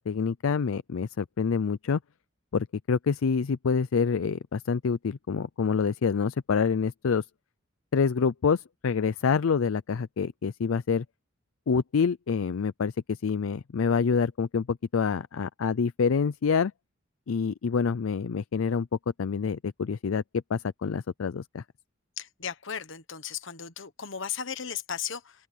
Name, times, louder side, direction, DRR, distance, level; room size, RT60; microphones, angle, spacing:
voice 1, 0.0-2.0 2.5-7.2 7.9-11.0 11.7-16.7 17.3-18.9 19.2-20.2 20.5-21.6, left 5 dB, 85° left, 0.5 m, -27 dB
voice 2, 22.2-25.3, left 8 dB, 70° left, 1.3 m, -35 dB
open air
head